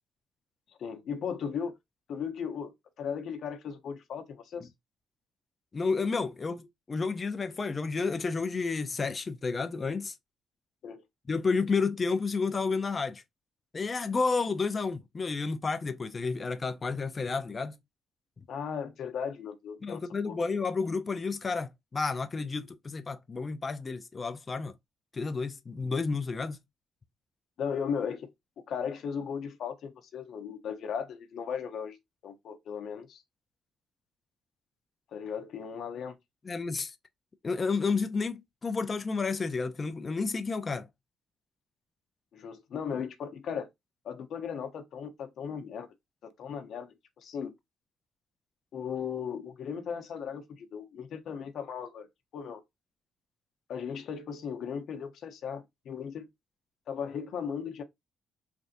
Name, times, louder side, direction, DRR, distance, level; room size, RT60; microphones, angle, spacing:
voice 1, 0.7-1.8 2.1-4.7 10.8-11.0 18.5-20.4 27.6-28.3 28.7-32.0 32.2-33.2 35.1-36.2 42.3-43.7 44.0-45.9 46.2-47.5 48.7-52.1 52.3-52.6 53.7-56.3 56.9-57.8, left 7 dB, 70° left, 0.7 m, -37 dB
voice 2, 5.7-10.1 11.3-13.2 13.7-17.8 19.8-24.7 25.1-26.6 36.4-36.9 37.4-40.9, left 4 dB, 35° left, 0.4 m, -31 dB
3.3 x 2.6 x 2.5 m
cardioid pair, 90°, 0 cm